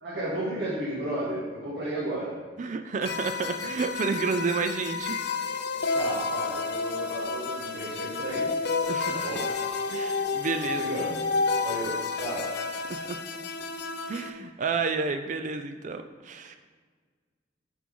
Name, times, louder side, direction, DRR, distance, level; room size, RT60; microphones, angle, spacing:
voice 1, 0.0-2.4 5.9-8.5 9.1-9.4 10.8-11.2 11.6-12.5, right 1 dB, 65° right, -8 dB, 1.8 m, -33 dB
voice 2, 2.6-5.2 8.9-9.3 9.9-10.8 12.9-13.2 14.1-16.6, right 4 dB, 45° right, 8 dB, 0.4 m, -30 dB
sound 1, 3.0-14.3, left 4 dB, 65° left, 0.6 m, -31 dB
9.9 x 4.6 x 3.7 m, 1.5 s
head